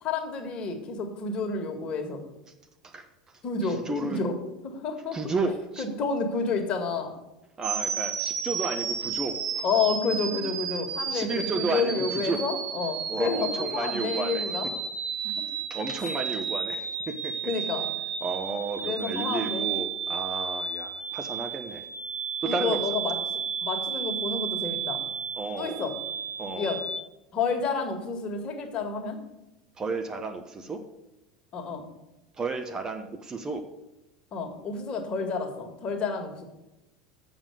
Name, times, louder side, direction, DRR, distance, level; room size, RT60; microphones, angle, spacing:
voice 1, 0.0-2.2 3.4-4.4 4.6-5.2 5.8-7.1 9.6-14.7 15.2-15.4 17.4-17.9 18.8-19.7 22.4-23.2 23.6-25.0 25.6-25.9 26.6-26.8 27.3-29.2 31.5-31.9 34.3-36.5, left 4 dB, 35° left, 3 dB, 1.8 m, -30 dB
voice 2, 3.6-4.2 5.1-5.9 7.6-9.6 11.1-12.4 13.1-14.5 15.7-17.5 18.2-21.9 22.4-22.8 25.4-25.9 26.4-26.8 29.8-30.8 32.4-33.7, right 3 dB, 20° right, 6 dB, 0.8 m, -32 dB
sound 1, 7.6-27.0, right 7 dB, 55° right, 1.4 m, -32 dB
7.3 x 7.0 x 7.8 m, 0.97 s
figure-of-eight pair, 75°, 3 cm